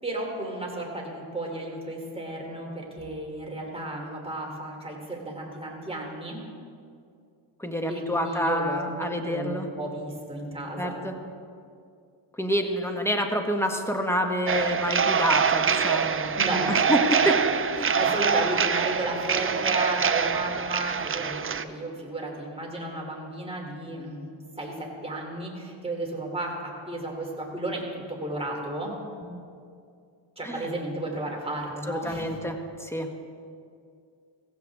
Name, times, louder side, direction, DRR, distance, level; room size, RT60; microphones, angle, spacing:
voice 1, 0.0-6.4 7.9-11.0 16.4-17.4 17.8-24.2 24.6-28.9 30.4-32.4, right 1 dB, 10° right, -1 dB, 3.1 m, -33 dB
voice 2, 7.6-9.7 10.8-11.1 12.4-16.4 16.7-17.4 29.3-29.4 30.4-30.6 31.9-33.1, equal, 5° left, 4 dB, 1.4 m, -28 dB
sound 1, 14.5-21.6, right 6 dB, 30° right, 0.5 m, -25 dB
16.0 x 15.5 x 3.6 m, 2.3 s
cardioid pair, 80°, 48 cm